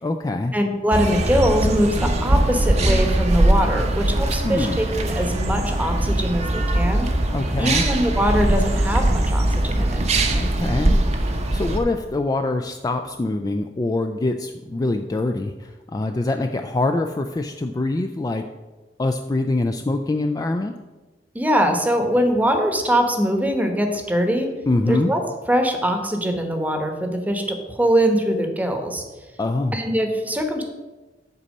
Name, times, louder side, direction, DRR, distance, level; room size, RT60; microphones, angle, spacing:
voice 1, 0.0-0.5 4.4-4.8 7.3-7.9 10.3-18.5 19.0-20.7 24.7-25.1 29.4-29.8, left 2 dB, 20° left, 6 dB, 0.3 m, -24 dB
voice 2, 0.5-7.1 7.6-10.0 21.3-24.5 24.9-25.2 25.5-29.0 29.7-30.6, equal, 10° right, 4 dB, 1.0 m, -22 dB
sound 1, 0.9-11.8, right 1 dB, 40° right, 0.8 m, -21 dB
8.1 x 4.2 x 6.4 m, 1.2 s
head